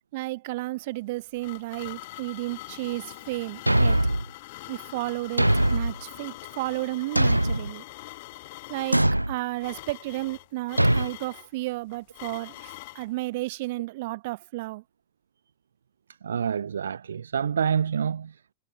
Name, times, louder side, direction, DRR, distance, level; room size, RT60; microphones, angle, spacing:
voice 1, 0.1-4.0 4.7-7.8 8.7-14.8, right 20 dB, 50° right, 1.8 m, -33 dB
sound 1, 0.9-13.1, left 20 dB, 50° left, 3.8 m, -44 dB
Thump thud, 3.7-4.3 5.4-6.0 7.2-7.7 8.9-9.3 10.8-11.1, right 1 dB, 85° right, 0.4 m, -21 dB
voice 2, 16.2-18.5, right 7 dB, 70° right, 1.0 m, -27 dB
figure-of-eight pair, 90°, 0 cm